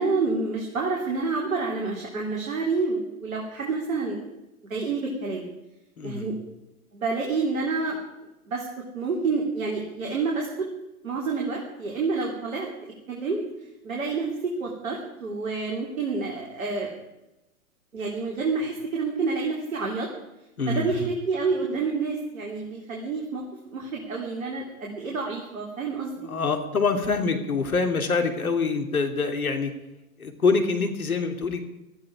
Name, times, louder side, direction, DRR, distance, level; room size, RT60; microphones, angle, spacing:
voice 1, 0.0-4.3 4.7-5.5 6.0-6.4 6.9-8.0 8.5-8.6 8.9-10.7 11.0-12.7 13.1-13.4 13.8-16.9 17.9-20.1 20.7-23.4 23.7-26.3, right 4 dB, 65° right, -1 dB, 3.6 m, -28 dB
voice 2, 6.0-6.3 20.6-21.1 26.2-29.7 30.2-31.6, left 4 dB, 70° left, 6 dB, 2.7 m, -25 dB
19.0 x 14.0 x 4.9 m, 0.96 s
figure-of-eight pair, 115°, 44 cm